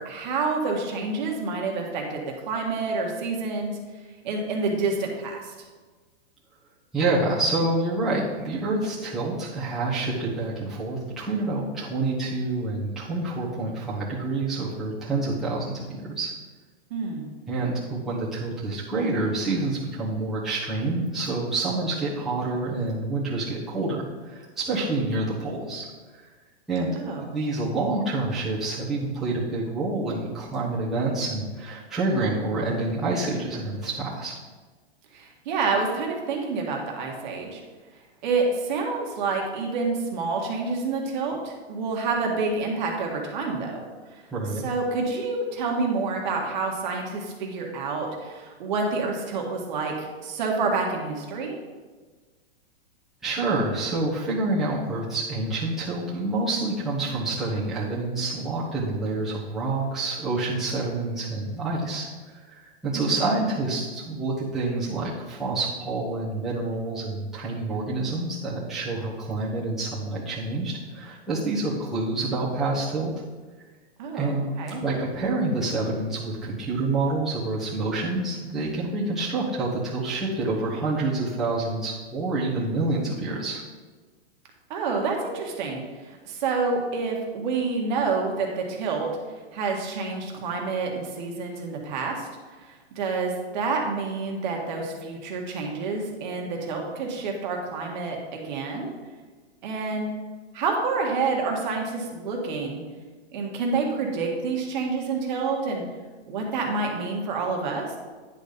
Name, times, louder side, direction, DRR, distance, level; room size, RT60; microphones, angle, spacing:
voice 1, 0.0-3.8 4.2-5.5 16.9-17.3 26.9-27.3 35.1-37.6 38.2-43.8 44.1-44.2 44.6-51.6 62.9-63.1 74.0-74.8 84.7-89.1 89.5-92.3 92.6-98.9 99.6-100.1 100.5-102.8 103.3-105.8 106.3-107.8, right 4 dB, 45° right, 0 dB, 1.5 m, -28 dB
voice 2, 6.9-16.3 17.5-25.8 26.1-26.3 26.7-26.9 27.3-34.3 44.3-44.6 53.2-62.1 62.5-73.1 74.1-74.4 74.8-83.6, right 2 dB, ahead, -10 dB, 1.1 m, -27 dB
10.0 x 4.2 x 5.1 m, 1.4 s
hypercardioid pair, 165°, 32 cm